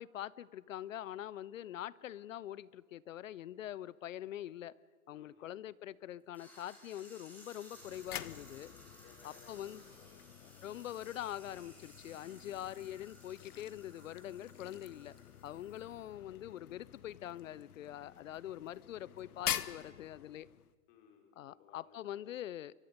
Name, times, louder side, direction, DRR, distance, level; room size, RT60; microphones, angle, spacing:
voice 1, 0.0-4.7 5.1-8.7 9.2-9.8 10.6-15.2 15.4-20.5 21.4-22.7, left 12 dB, 60° left, 22 dB, 0.6 m, -44 dB
voice 2, 5.1-5.5 9.0-10.6 20.9-22.2, left 7 dB, 40° left, 2 dB, 4.5 m, -62 dB
sound 1, 6.3-16.1, equal, 5° left, 4.9 m, -59 dB
sound 2, 7.7-20.7, left 10 dB, 75° left, 1.0 m, -46 dB
28.5 x 23.5 x 5.3 m, 1.5 s
hypercardioid pair, 145°, 46 cm